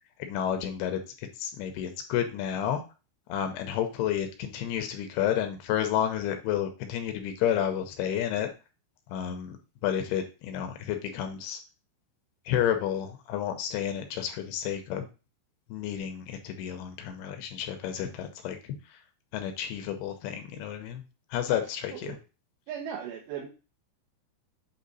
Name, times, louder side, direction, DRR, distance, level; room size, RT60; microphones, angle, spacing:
voice 1, 0.2-2.8 3.3-8.5 9.1-9.6 9.8-11.6 12.5-15.1 15.7-19.0 19.3-21.0 21.3-22.2, left 10 dB, 80° left, 6 dB, 2.4 m, -31 dB
voice 2, 22.7-23.5, right 8 dB, 75° right, -2 dB, 3.0 m, -37 dB
8.6 x 3.3 x 4.0 m, 0.32 s
omnidirectional pair, 5.3 m